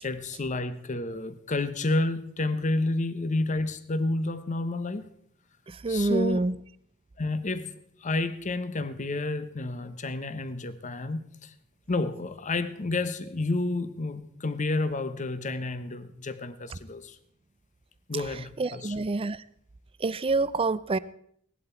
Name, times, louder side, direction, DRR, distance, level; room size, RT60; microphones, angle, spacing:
voice 1, 0.0-5.1 5.9-6.5 7.2-7.7 8.0-11.5 11.9-17.2 18.1-18.9, left 2 dB, 35° left, 12 dB, 0.8 m, -30 dB
voice 2, 5.7-6.6 16.7-16.8 18.6-19.4 20.0-21.0, right 3 dB, 25° right, 17 dB, 0.4 m, -27 dB
17.5 x 11.5 x 4.4 m, 0.68 s
head